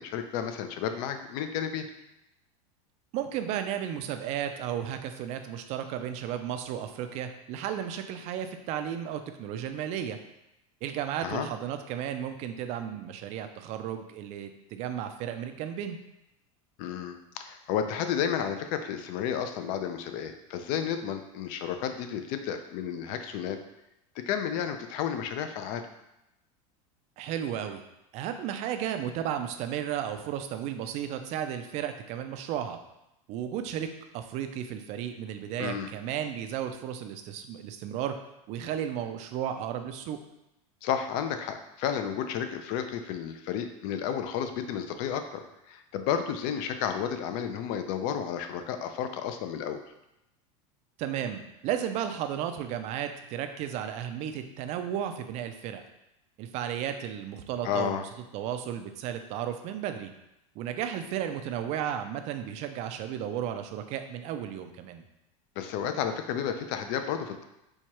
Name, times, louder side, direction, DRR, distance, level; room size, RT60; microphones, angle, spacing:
voice 1, 0.0-1.9 11.2-11.5 16.8-23.6 24.3-25.9 35.6-35.9 40.8-49.8 57.6-58.1 65.6-67.4, left 8 dB, 50° left, 8 dB, 0.4 m, -32 dB
voice 2, 3.1-10.2 10.8-16.0 27.2-27.8 28.1-32.8 33.3-38.2 38.5-40.2 51.0-55.8 56.4-60.1 60.6-65.0, right 9 dB, 40° right, 7 dB, 0.4 m, -34 dB
4.4 x 2.3 x 2.9 m, 0.88 s
supercardioid pair, 140°, 17 cm